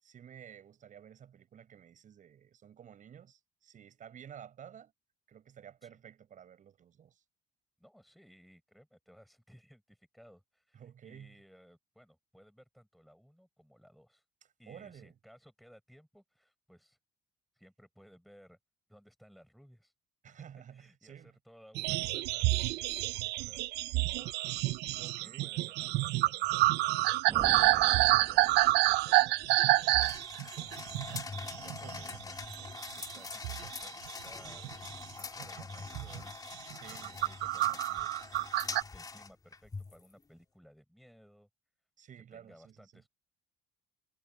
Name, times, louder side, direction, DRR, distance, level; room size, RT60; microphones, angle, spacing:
voice 1, 0.0-4.9 5.3-7.2 10.7-11.4 14.7-15.1 20.2-21.4 21.9-22.2 25.0-25.5 31.8-32.0 36.7-37.2 42.0-43.0, right 9 dB, 50° right, 6.6 m, -52 dB
voice 2, 7.8-14.2 14.6-17.0 17.5-18.6 18.9-19.9 20.2-20.5 20.7-24.4 25.2-28.2 28.7-32.4 32.6-34.7 35.2-36.4 36.7-41.5 42.3-43.1, equal, ahead, 7.5 m, -60 dB
sound 1, 21.7-32.2 32.5-33.2 33.4-34.9 35.4-35.6 35.9-36.2 36.7-38.8, right 18 dB, 85° right, 0.6 m, -28 dB
sound 2, 27.3-29.3, right 6 dB, 30° right, 1.2 m, -44 dB
sound 3, 27.7-40.1, left 4 dB, 20° left, 3.1 m, -44 dB
cardioid pair, 110°, 17 cm